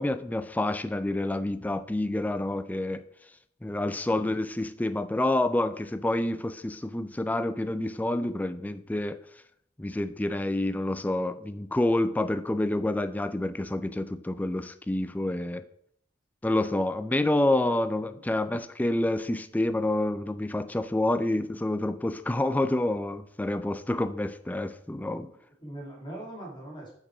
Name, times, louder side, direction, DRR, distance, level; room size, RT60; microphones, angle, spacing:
voice 1, 0.0-3.0 3.6-9.2 9.8-15.6 16.4-25.3, left 1 dB, 10° left, 0.3 m, -28 dB
voice 2, 25.6-26.9, right 1 dB, 25° left, 2.2 m, -42 dB
6.5 x 6.0 x 4.6 m
head